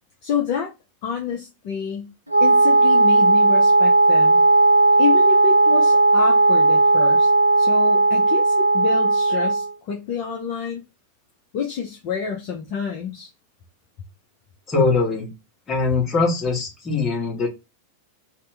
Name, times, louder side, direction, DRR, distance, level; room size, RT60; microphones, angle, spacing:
voice 1, 0.2-0.7 1.0-2.1 2.4-4.4 5.0-7.3 7.6-10.8 11.5-13.3, left 6 dB, 45° left, 0.6 m, -28 dB
Wind instrument woodwind instrument, 2.3-9.7, right 2 dB, 80° right, 0.4 m, -16 dB
voice 2, 14.7-15.3 15.7-17.5, left 4 dB, 20° left, 1.4 m, -21 dB
2.9 x 2.1 x 3.3 m
figure-of-eight pair, 90°, 0 cm